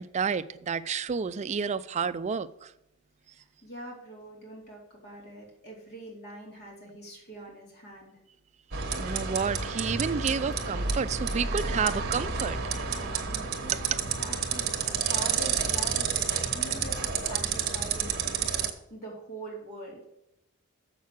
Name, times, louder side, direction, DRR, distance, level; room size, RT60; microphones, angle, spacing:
voice 1, 0.0-2.7 8.9-12.7 13.7-14.0, right 6 dB, 30° right, 0.4 m, -30 dB
voice 2, 3.6-8.2 13.5-18.1 18.9-20.0, right 1 dB, 50° left, 2.6 m, -43 dB
sound 1, 8.7-18.7, right 6 dB, 50° right, 1.1 m, -30 dB
7.4 x 6.0 x 7.2 m
head